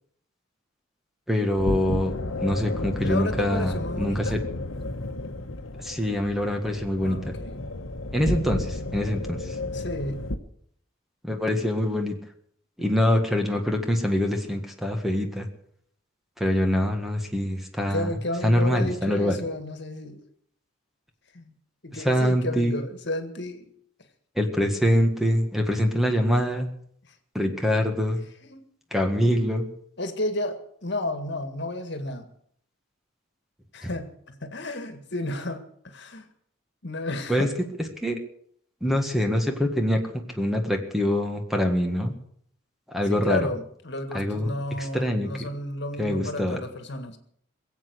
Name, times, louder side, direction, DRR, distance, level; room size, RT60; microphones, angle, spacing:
voice 1, 1.3-2.1 2.4-4.4 5.8-7.3 8.1-9.6 11.2-12.2 12.8-15.5 16.4-18.1 18.4-19.4 22.0-22.8 24.3-26.7 27.3-28.2 28.9-29.7 33.8-33.9 37.3-37.5 38.0-38.2 38.8-42.1 42.9-43.5 44.1-44.5 44.8-45.3 46.0-46.6, equal, ahead, 3 dB, 1.6 m, -24 dB
sound 1, 1.5-10.4, left 2 dB, 75° left, 1.3 m, -32 dB
voice 2, 3.0-4.4 7.0-7.6 9.7-10.2 17.9-20.2 21.3-21.5 21.8-23.7 27.0-27.1 28.4-28.6 30.0-32.3 33.7-36.3 36.8-37.5 43.1-47.2, left 1 dB, 55° left, 8 dB, 1.9 m, -32 dB
22.0 x 8.2 x 8.0 m, 0.65 s
head